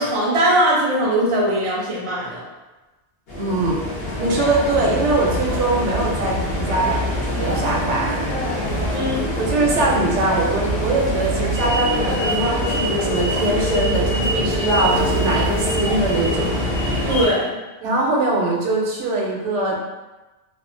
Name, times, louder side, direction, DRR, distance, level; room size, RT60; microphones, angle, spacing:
voice 1, 0.0-2.4 8.9-9.2 17.1-17.6, right 1 dB, 35° right, -5 dB, 0.6 m, -20 dB
sound 1, 3.3-17.3, equal, 60° left, 1.1 m, -23 dB
voice 2, 3.3-3.8 4.2-7.1 7.4-8.3 9.4-16.6 17.8-19.8, right 2 dB, 80° right, -2 dB, 0.9 m, -22 dB
2.7 x 2.3 x 2.5 m, 1.1 s
omnidirectional pair, 1.2 m